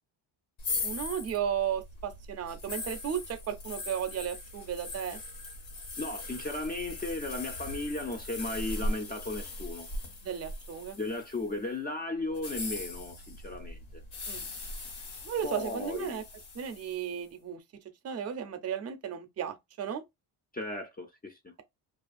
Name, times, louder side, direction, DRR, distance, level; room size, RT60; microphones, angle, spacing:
sound 1, 0.6-11.6 12.3-17.1, left 2 dB, 80° left, 1.2 m, -39 dB
voice 1, 0.8-5.2 10.2-11.0 14.3-14.4 15.2-16.2 16.5-17.6 18.0-20.0, right 8 dB, 35° right, 0.5 m, -34 dB
voice 2, 6.0-9.9 11.0-14.0 15.4-16.2 20.5-21.5, left 2 dB, 20° left, 0.4 m, -35 dB
2.5 x 2.3 x 2.4 m
cardioid pair, 95°, 46 cm